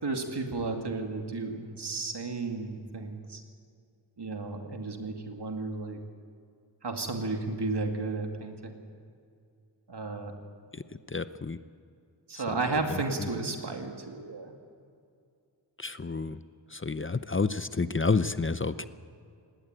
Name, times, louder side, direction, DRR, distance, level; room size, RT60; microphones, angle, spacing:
voice 1, 0.0-3.4 4.2-6.0 6.8-8.8 9.9-10.3 12.3-14.5, right 3 dB, 70° right, 4 dB, 2.5 m, -33 dB
voice 2, 11.1-11.6 12.3-12.4 12.9-13.3 15.8-16.4 16.7-18.9, left 4 dB, 30° left, 13 dB, 0.7 m, -30 dB
19.5 x 17.0 x 9.0 m, 2.4 s
wide cardioid pair, 55°, 42 cm